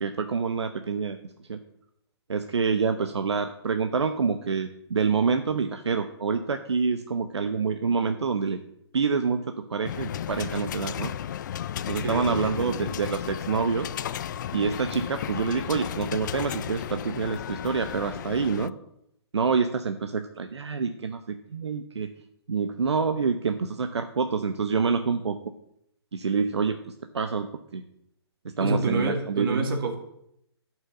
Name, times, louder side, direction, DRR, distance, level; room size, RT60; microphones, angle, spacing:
voice 1, 0.0-1.2 1.5-1.6 2.3-8.6 8.9-11.1 11.9-13.9 14.5-18.7 19.3-22.1 22.5-25.4 26.1-26.8 27.1-27.5 27.7-27.8 28.4-29.7, right 5 dB, 85° right, 7 dB, 1.0 m, -27 dB
sound 1, 9.8-18.7, left 10 dB, 45° left, 0.4 m, -34 dB
voice 2, 12.0-12.9 28.6-29.9, right 3 dB, 55° right, 4 dB, 2.8 m, -28 dB
11.0 x 6.2 x 7.9 m, 0.77 s
hypercardioid pair, 145°, 14 cm